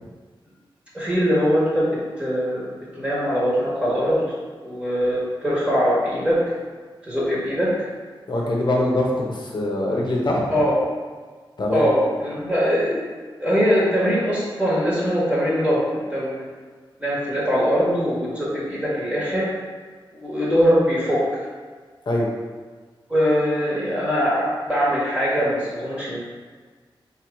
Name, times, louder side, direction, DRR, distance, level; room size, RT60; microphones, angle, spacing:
voice 1, 0.9-4.2 4.6-6.4 7.0-7.9 10.5-10.8 11.7-13.0 13.4-16.4 17.0-19.5 20.1-21.4 23.1-26.2, equal, 10° right, -8 dB, 1.4 m, -22 dB
voice 2, 8.3-10.4 11.6-11.8 22.1-22.3, left 1 dB, 55° left, -3 dB, 1.0 m, -23 dB
3.3 x 3.1 x 4.7 m, 1.5 s
wide cardioid pair, 70°, 9 cm